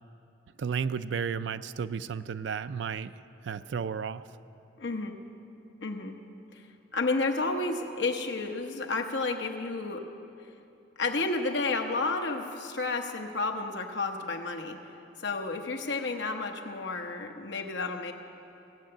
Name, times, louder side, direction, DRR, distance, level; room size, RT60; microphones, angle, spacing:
voice 1, 0.6-3.1 3.4-4.2, right 6 dB, 80° right, 14 dB, 0.4 m, -33 dB
voice 2, 4.8-5.2 5.8-6.2 6.5-6.6 6.9-10.0 11.0-14.8 15.2-18.1, left 3 dB, 75° left, 4 dB, 1.0 m, -31 dB
17.0 x 6.7 x 8.7 m, 2.8 s
head